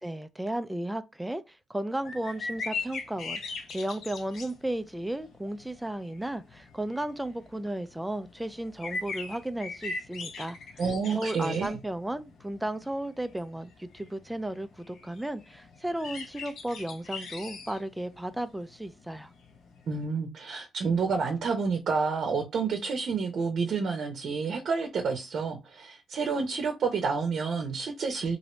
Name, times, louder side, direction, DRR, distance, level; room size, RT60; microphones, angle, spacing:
voice 1, 0.0-3.4 3.7-10.8 11.1-19.3, right 1 dB, 5° right, 0.4 m, -34 dB
sound 1, 2.0-20.0, left 4 dB, 70° left, 0.8 m, -41 dB
voice 2, 10.8-11.8 19.9-28.4, right 5 dB, 60° right, 0.7 m, -29 dB
3.1 x 2.6 x 3.0 m
cardioid pair, 90°, 0 cm